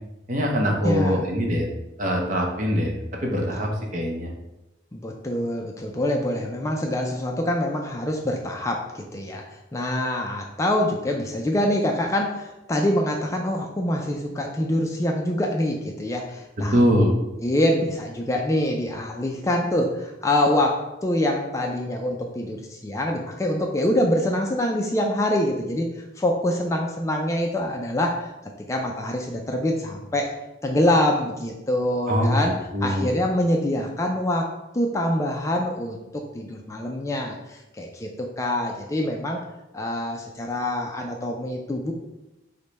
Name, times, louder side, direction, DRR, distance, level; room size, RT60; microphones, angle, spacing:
voice 1, 0.3-1.7 2.0-4.3 16.7-17.2 32.1-33.1, equal, 40° right, 0 dB, 0.7 m, -23 dB
voice 2, 0.8-1.3 4.9-9.4 9.7-17.1 17.4-28.3 28.7-30.3 30.6-32.5 32.8-34.5 34.7-39.4 39.7-41.9, left 1 dB, 15° left, 1 dB, 0.3 m, -25 dB
5.0 x 2.2 x 4.1 m, 0.98 s
head